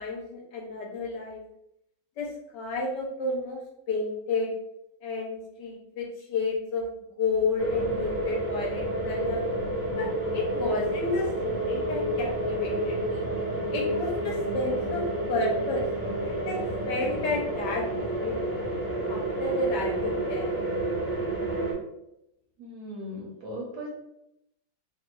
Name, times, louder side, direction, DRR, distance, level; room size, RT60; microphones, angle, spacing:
voice 1, 0.0-1.4 2.2-3.6 3.9-4.5 5.0-6.8 7.2-9.4 9.9-13.3 13.7-15.0 15.3-15.8 16.2-18.4 19.1-20.6, left 3 dB, 70° left, -1 dB, 1.1 m, -31 dB
sound 1, 7.6-21.7, right 1 dB, 85° right, 0.4 m, -30 dB
voice 2, 22.6-23.9, equal, 65° right, -3 dB, 1.1 m, -38 dB
3.3 x 2.3 x 2.9 m, 0.81 s
omnidirectional pair, 2.1 m